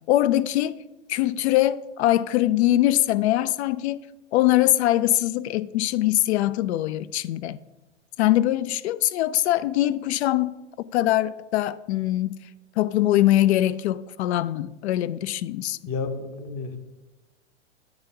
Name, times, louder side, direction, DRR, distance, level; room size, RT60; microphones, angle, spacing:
voice 1, 0.1-0.8 1.1-4.0 4.3-7.6 8.2-10.5 10.9-12.4 12.8-15.8, left 14 dB, 65° left, 0.5 m, -22 dB
voice 2, 15.9-16.9, left 4 dB, 35° left, 1.0 m, -31 dB
8.8 x 3.4 x 5.7 m
hypercardioid pair, 110°, 36 cm